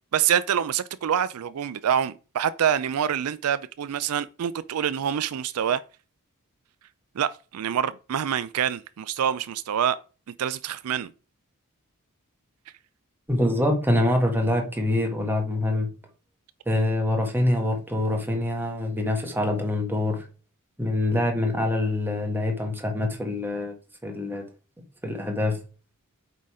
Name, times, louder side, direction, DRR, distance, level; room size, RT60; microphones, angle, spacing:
voice 1, 0.1-5.8 7.2-10.0 10.4-11.1, right 9 dB, 75° right, 0.4 m, -26 dB
voice 2, 13.3-15.9 16.7-20.2 20.8-23.7 24.0-24.5 25.0-25.6, left 1 dB, 10° right, 1.6 m, -25 dB
8.2 x 3.9 x 4.9 m
head